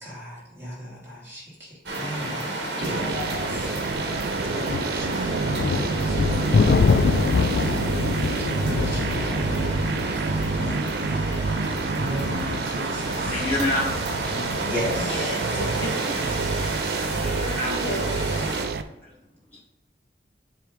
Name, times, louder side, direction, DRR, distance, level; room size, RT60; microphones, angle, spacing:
voice 1, 0.0-1.0 1.3-1.4 2.0-2.3 2.8-3.0 4.4-5.1 5.4-5.7 6.4-6.6 6.9-7.0 7.6-7.7 8.8-9.1 10.5-10.8 12.0-13.0 14.3-15.3, left 1 dB, 15° right, -8 dB, 2.6 m, -34 dB
sound 1, 1.8-18.6, right 1 dB, 75° right, 1.5 m, -32 dB
voice 2, 2.2-7.2 8.7-8.8 9.3-10.1 15.0-15.9 17.7-18.4, left 1 dB, 90° left, -2 dB, 1.7 m, -38 dB
sound 2, 2.8-18.8, right 4 dB, 60° right, 0.4 m, -28 dB
sound 3, 4.7-15.3, left 5 dB, 65° left, 0.3 m, -26 dB
voice 3, 13.3-13.9 17.2-18.0 19.0-19.1, left 1 dB, 10° left, -9 dB, 1.1 m, -27 dB
7.5 x 3.4 x 5.1 m, 0.93 s
head